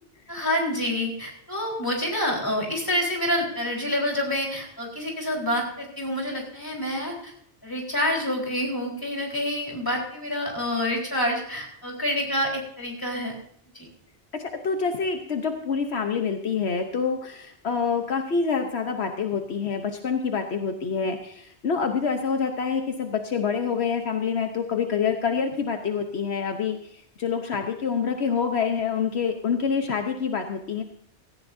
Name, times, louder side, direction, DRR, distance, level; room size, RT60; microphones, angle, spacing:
voice 1, 0.3-7.3 7.6-13.3 13.7-13.9, left 1 dB, 20° left, -2 dB, 4.1 m, -27 dB
voice 2, 14.3-30.8, left 6 dB, 70° left, 5 dB, 1.2 m, -27 dB
17.0 x 14.5 x 2.7 m, 0.70 s
omnidirectional pair, 1.1 m